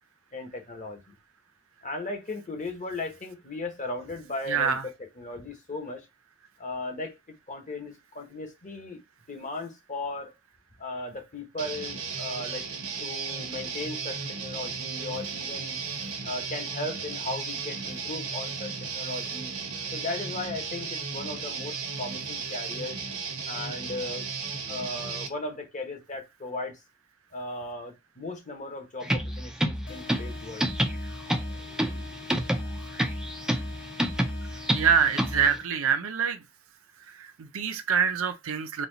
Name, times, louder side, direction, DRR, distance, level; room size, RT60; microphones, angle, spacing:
voice 1, 0.3-1.1 1.8-6.1 6.6-7.2 7.5-9.0 9.3-10.3 10.8-12.7 13.0-15.8 16.2-19.5 19.9-23.0 23.5-24.3 24.7-26.8 27.3-30.7, left 2 dB, 35° left, 1.1 m, -37 dB
voice 2, 4.5-4.8 34.7-36.4 37.2-38.9, right 6 dB, 65° right, 0.5 m, -25 dB
Guitar, 11.6-25.3, right 5 dB, 80° right, 1.0 m, -35 dB
sound 1, 29.0-35.6, right 1 dB, 5° right, 0.4 m, -29 dB
sound 2, 29.9-35.9, left 7 dB, 80° left, 2.4 m, -45 dB
4.2 x 2.3 x 3.9 m
head